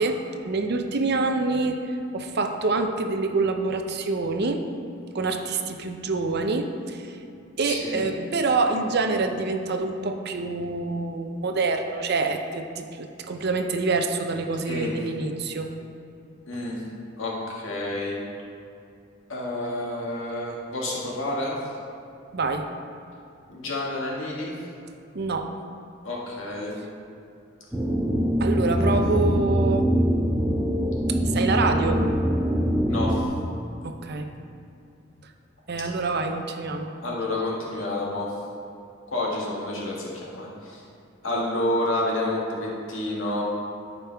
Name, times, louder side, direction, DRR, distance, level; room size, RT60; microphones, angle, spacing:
voice 1, 0.0-4.6 5.1-7.2 7.6-15.7 22.3-22.7 25.1-25.5 28.4-29.9 31.1-32.0 33.8-34.3 35.7-36.9, right 3 dB, 55° right, 5 dB, 0.7 m, -26 dB
voice 2, 7.6-8.1 14.7-14.9 16.5-16.8 17.2-18.2 19.3-21.6 23.5-24.5 26.0-26.7 28.7-29.0 32.9-33.2 37.0-38.3 39.1-40.8 41.2-43.4, left 1 dB, 75° left, -4 dB, 1.9 m, -29 dB
sound 1, 27.7-33.2, equal, 5° right, 0.6 m, -23 dB
13.5 x 5.3 x 3.5 m, 2.6 s
head